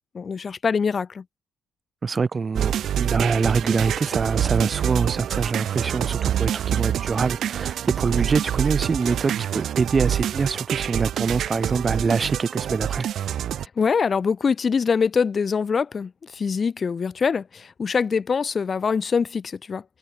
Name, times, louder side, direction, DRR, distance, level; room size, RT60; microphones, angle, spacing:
voice 1, 0.1-1.2 13.8-19.8, left 5 dB, 40° left, 0.9 m, -24 dB
voice 2, 2.0-13.1, right 4 dB, 35° right, 0.6 m, -24 dB
sound 1, 2.6-13.7, right 10 dB, 70° right, 1.5 m, -26 dB
cardioid pair, 90°, 0 cm